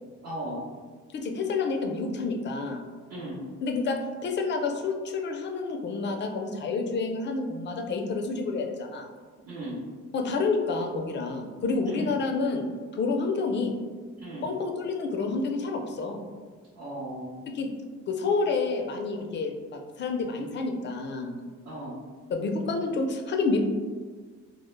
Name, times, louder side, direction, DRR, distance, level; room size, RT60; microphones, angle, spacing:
voice 1, 0.2-0.6 3.1-3.4 9.4-9.8 11.8-12.1 14.2-14.5 16.7-17.4 21.6-22.0, right 1 dB, 70° right, -10 dB, 0.8 m, -37 dB
voice 2, 1.1-2.8 3.6-9.1 10.1-13.7 14.4-16.2 17.5-17.7 18.1-21.4 22.3-23.6, left 4 dB, 40° left, 3 dB, 0.4 m, -29 dB
2.1 x 2.0 x 3.1 m, 1.5 s
cardioid pair, 90°, 30 cm